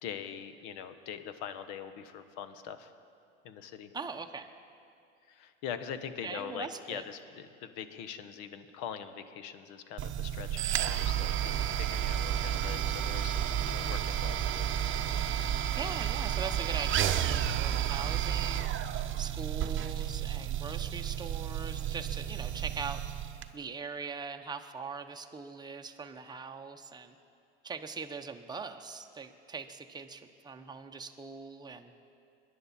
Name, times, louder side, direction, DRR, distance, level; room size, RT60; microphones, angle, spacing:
voice 1, 0.0-2.9 3.4-3.9 5.3-14.8, left 8 dB, 60° left, 11 dB, 1.2 m, -43 dB
voice 2, 3.9-4.5 6.2-7.0 15.4-18.8 19.2-23.0 23.5-27.1 27.6-31.9, right 5 dB, 10° right, 4 dB, 0.9 m, -41 dB
sound 1, 10.0-23.5, right 10 dB, 35° right, 0.8 m, -31 dB
23.0 x 10.5 x 4.3 m, 2.4 s
hypercardioid pair, 85°, 35 cm